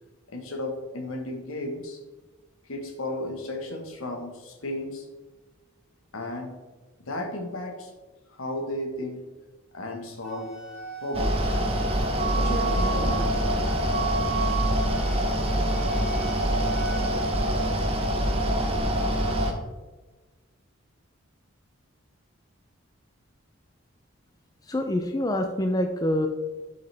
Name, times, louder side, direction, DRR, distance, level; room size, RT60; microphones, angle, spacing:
voice 1, 0.3-2.0 2.6-5.1 6.1-6.6 7.0-7.9 8.3-9.2 9.7-10.5 11.0-11.6 12.3-13.5, left 1 dB, 75° left, 2 dB, 1.4 m, -34 dB
Wind instrument woodwind instrument, 10.2-17.1, right 5 dB, ahead, 2.0 m, -36 dB
Mechanical fan, 11.1-19.5, equal, 25° right, 0.7 m, -25 dB
voice 2, 24.7-26.3, left 1 dB, 15° left, 4 dB, 0.3 m, -26 dB
7.5 x 5.5 x 3.4 m, 1.2 s
head